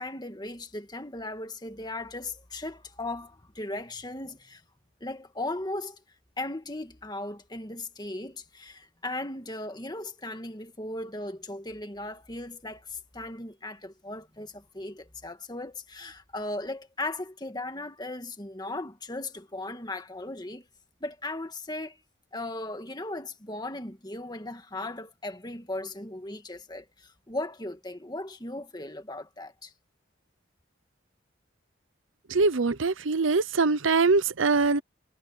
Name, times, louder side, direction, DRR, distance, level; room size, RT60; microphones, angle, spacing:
voice 1, 0.0-4.6 5.0-6.0 6.4-20.7 21.0-22.0 22.3-29.7, left 2 dB, 20° left, 1.7 m, -37 dB
voice 2, 32.3-34.8, right 4 dB, 90° right, 0.8 m, -23 dB
head